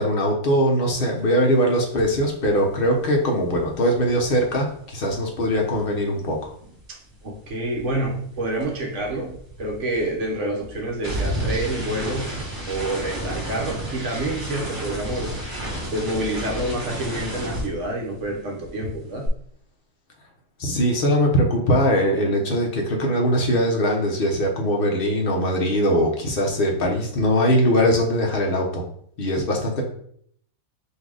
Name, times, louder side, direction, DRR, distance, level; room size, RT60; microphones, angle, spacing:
voice 1, 0.0-6.5 20.6-28.8 29.2-29.8, equal, 45° left, 1 dB, 1.0 m, -21 dB
sound 1, 2.0-2.2 2.4-6.8 7.1-18.4 18.6-19.3, right 1 dB, 15° right, 1.6 m, -32 dB
voice 2, 6.9-12.4 12.7-15.4 15.9-19.3, right 1 dB, 60° right, -1 dB, 1.3 m, -28 dB
4.0 x 2.8 x 4.8 m, 0.65 s
omnidirectional pair, 1.5 m